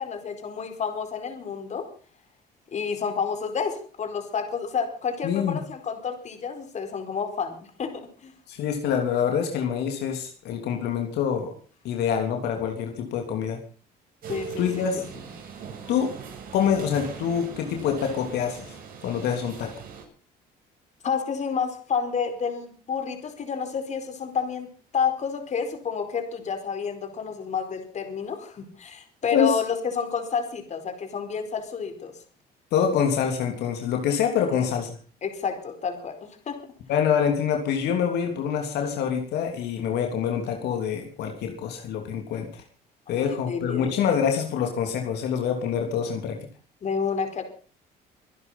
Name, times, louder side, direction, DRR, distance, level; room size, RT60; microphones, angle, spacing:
voice 1, 0.0-1.9 2.7-8.3 14.3-15.0 21.0-24.7 24.9-32.1 34.5-34.7 35.2-36.1 36.5-36.6 43.2-43.9 46.8-47.4, left 6 dB, 45° left, 7 dB, 4.6 m, -30 dB
voice 2, 5.2-5.6 8.5-11.5 11.8-13.6 14.6-15.0 15.9-16.1 16.5-18.7 19.0-19.7 29.3-29.6 32.7-34.9 36.9-42.6 43.1-46.4, left 7 dB, 80° left, 4 dB, 3.4 m, -26 dB
sound 1, 14.2-20.0, right 7 dB, 60° right, 7.9 m, -40 dB
25.0 x 10.0 x 5.7 m, 0.42 s
cardioid pair, 110°, 17 cm